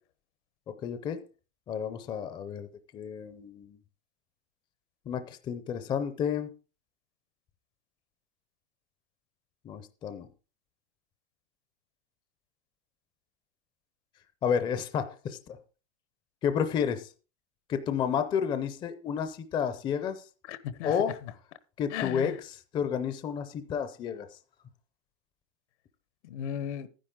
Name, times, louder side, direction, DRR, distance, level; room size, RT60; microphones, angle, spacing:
voice 1, 0.8-1.2 1.7-2.7 2.9-3.8 5.1-6.5 9.6-10.3 14.4-15.6 16.4-17.1 17.7-20.2 20.8-21.1 21.8-22.3 22.7-24.3, left 7 dB, 15° left, 0.5 m, -31 dB
voice 2, 20.5-21.3 21.9-22.4 26.2-26.9, left 10 dB, 85° left, 1.3 m, -36 dB
11.5 x 10.0 x 3.7 m
supercardioid pair, 165°, 34 cm